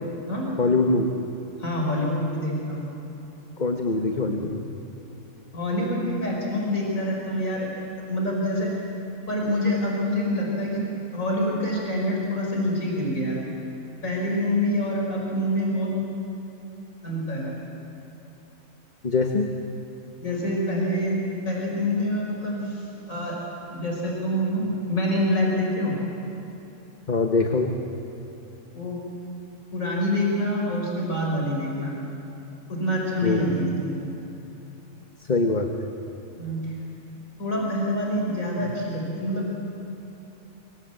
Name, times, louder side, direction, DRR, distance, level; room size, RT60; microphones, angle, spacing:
voice 1, 0.6-1.1 3.6-4.7 19.0-19.5 27.1-27.8 33.2-33.5 35.3-35.7, left 3 dB, 35° left, 3 dB, 1.4 m, -23 dB
voice 2, 1.6-2.9 5.5-7.7 8.0-8.7 9.3-13.4 14.0-16.0 17.0-17.6 20.2-21.2 21.5-23.4 23.7-26.0 28.7-29.0 29.7-32.0 32.7-34.2 36.4-36.7 37.4-39.5, left 1 dB, 80° left, -2 dB, 5.3 m, -26 dB
26.0 x 25.0 x 7.9 m, 2.9 s
omnidirectional pair, 1.4 m